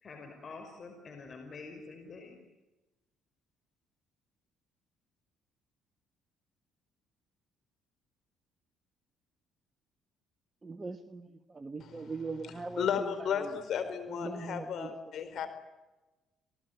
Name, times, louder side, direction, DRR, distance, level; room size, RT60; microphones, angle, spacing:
voice 1, 0.0-2.4, left 4 dB, 45° left, 5 dB, 5.3 m, -47 dB
voice 2, 10.6-13.5 14.1-15.3, right 3 dB, 25° right, 8 dB, 1.6 m, -41 dB
voice 3, 11.8-12.1 12.4-15.5, left 8 dB, 60° left, 10 dB, 4.4 m, -34 dB
28.5 x 18.5 x 9.4 m, 1.1 s
supercardioid pair, 70°, 0 cm